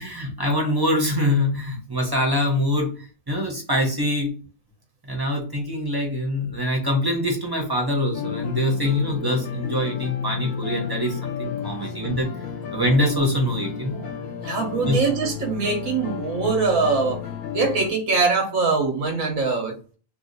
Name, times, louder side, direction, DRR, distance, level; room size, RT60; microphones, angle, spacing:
voice 1, 0.0-2.9 3.3-4.3 5.1-12.3 12.7-14.0 14.9-15.0, left 1 dB, 25° right, 0 dB, 0.6 m, -24 dB
sound 1, 8.1-17.9, left 8 dB, 75° left, 1.0 m, -31 dB
voice 2, 14.4-17.2 17.5-20.0, right 4 dB, 90° right, 2 dB, 1.2 m, -23 dB
2.7 x 2.3 x 3.9 m, 0.37 s
omnidirectional pair, 1.4 m